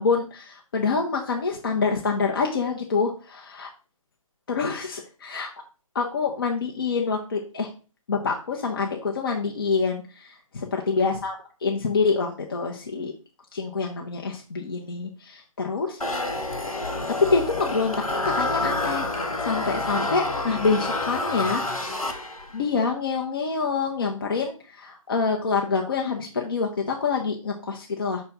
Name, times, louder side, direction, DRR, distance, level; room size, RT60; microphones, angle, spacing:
voice 1, 0.0-3.7 4.5-5.5 5.9-7.7 8.1-13.1 13.5-16.0 17.2-19.1 19.4-21.6 22.0-22.1 22.5-28.2, left 4 dB, 40° left, 1 dB, 0.8 m, -26 dB
sound 1, 16.0-22.6, left 2 dB, 80° left, 1.2 m, -28 dB
5.9 x 3.3 x 5.4 m, 0.35 s
figure-of-eight pair, 145°, 18 cm